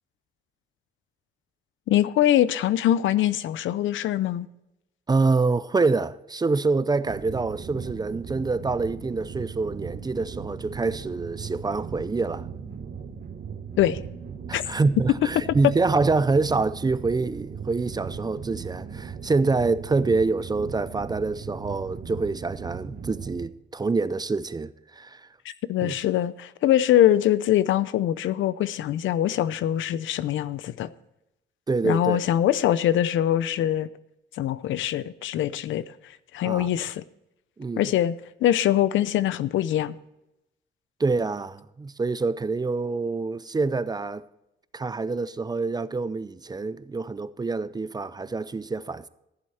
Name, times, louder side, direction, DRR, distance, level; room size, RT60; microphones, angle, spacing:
voice 1, 1.9-4.5 13.8-14.0 14.5-14.6 25.7-30.9 31.8-33.9 34.4-35.8 36.3-37.0 37.8-38.1 38.4-40.0, left 12 dB, 75° left, 0.6 m, -23 dB
voice 2, 5.1-12.5 14.5-25.3 25.8-25.9 31.7-32.2 36.4-36.7 37.6-37.9 41.0-44.3 44.7-49.1, right 3 dB, 20° right, 0.5 m, -26 dB
sound 1, 7.0-23.5, right 6 dB, 50° right, 1.6 m, -38 dB
14.0 x 7.8 x 4.2 m
cardioid pair, 90°, 20 cm